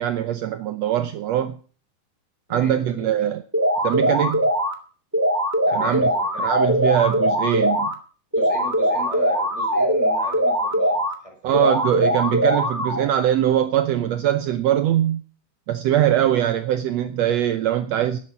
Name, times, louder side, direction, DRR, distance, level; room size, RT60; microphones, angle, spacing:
voice 1, 0.0-1.6 2.5-3.4 3.8-4.4 5.7-6.1 6.4-7.9 11.4-15.2 15.7-18.2, right 11 dB, 80° right, 1.5 m, -22 dB
voice 2, 2.5-3.3 5.7-6.5 8.3-11.7 16.0-16.3, equal, 10° left, 4.5 m, -38 dB
sound 1, 3.5-4.7 5.1-7.9 8.3-11.1 11.5-13.1, equal, 10° right, 0.7 m, -21 dB
12.5 x 11.0 x 5.8 m
omnidirectional pair, 3.8 m